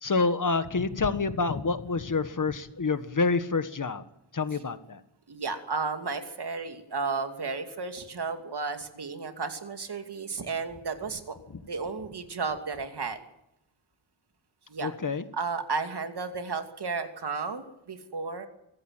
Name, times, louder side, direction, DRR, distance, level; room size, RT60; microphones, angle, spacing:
voice 1, 0.0-4.0 4.3-5.0 14.8-15.2, left 4 dB, 40° left, 11 dB, 1.6 m, -27 dB
voice 2, 5.3-13.2 14.7-14.9 15.3-18.5, right 4 dB, 55° right, 7 dB, 2.7 m, -33 dB
24.5 x 15.5 x 9.1 m, 0.82 s
wide cardioid pair, 165°, 47 cm